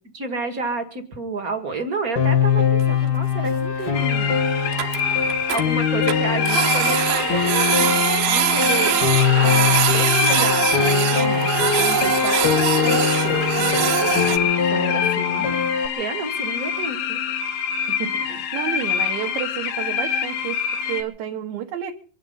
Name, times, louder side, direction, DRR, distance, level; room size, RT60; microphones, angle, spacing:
voice 1, 0.1-4.3 5.5-9.1 9.3-17.2, right 3 dB, 35° right, 6 dB, 1.7 m, -31 dB
Piano, 2.2-15.9, left 7 dB, 40° left, 1.6 m, -22 dB
Printer, 2.8-2.9 3.1-3.2 3.5-3.6 3.9-4.0 4.3-4.4 4.6-5.6 6.1-14.4, right 9 dB, 85° right, 2.8 m, -23 dB
sound 1, 3.9-21.0, left 7 dB, 80° left, 3.4 m, -26 dB
voice 2, 18.0-21.9, right 10 dB, 65° right, 2 dB, 2.6 m, -31 dB
25.0 x 10.5 x 5.5 m, 0.41 s
omnidirectional pair, 4.0 m